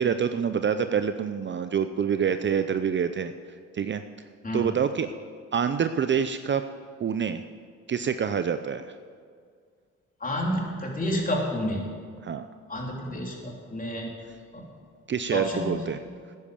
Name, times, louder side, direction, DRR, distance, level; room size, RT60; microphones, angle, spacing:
voice 1, 0.0-3.3 3.7-4.0 4.5-5.1 5.5-6.6 7.0-7.4 7.9-8.9 12.2-12.5 15.1-16.0, right 7 dB, 40° right, 10 dB, 0.6 m, -26 dB
voice 2, 10.2-11.8 12.7-14.1 14.5-14.6 15.3-15.9, equal, 30° left, -1 dB, 3.5 m, -29 dB
14.5 x 10.0 x 7.1 m, 2.1 s
cardioid pair, 90°, 30 cm